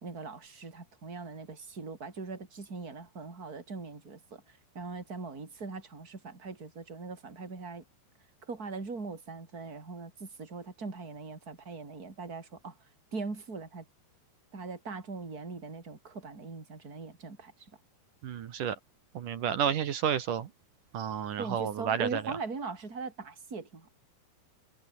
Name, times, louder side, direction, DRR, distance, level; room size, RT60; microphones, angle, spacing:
voice 1, 0.0-7.8 8.5-12.8 13.1-13.8 14.5-17.7 21.4-23.9, right 4 dB, 20° right, 4.6 m, -41 dB
voice 2, 18.2-18.8 19.1-20.5 20.9-22.2, right 8 dB, 60° right, 2.7 m, -31 dB
omnidirectional pair, 5.0 m